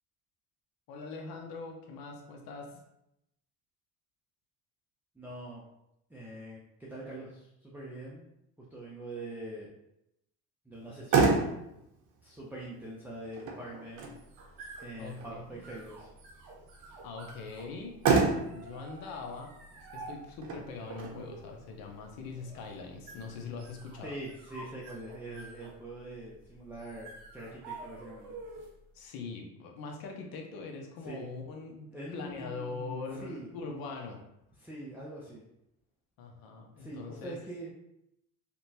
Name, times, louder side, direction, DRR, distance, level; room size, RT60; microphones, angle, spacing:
voice 1, 0.9-2.8 15.0-15.6 17.0-18.0 18.5-19.5 19.9-24.1 28.9-34.2 36.2-37.4, left 4 dB, 55° left, 2 dB, 0.7 m, -42 dB
voice 2, 5.2-5.6 6.1-8.3 8.7-9.7 10.7-11.5 12.2-14.1 14.8-16.1 24.0-28.4 31.0-31.3 31.9-33.5 34.6-35.4 36.8-37.7, right 1 dB, 5° right, -5 dB, 0.4 m, -43 dB
Motor vehicle (road), 10.7-23.7, right 4 dB, 45° right, 0.7 m, -33 dB
sound 1, 14.0-28.9, right 3 dB, 75° right, 0.9 m, -50 dB
2.8 x 2.2 x 2.7 m, 0.83 s
supercardioid pair, 80°, 43 cm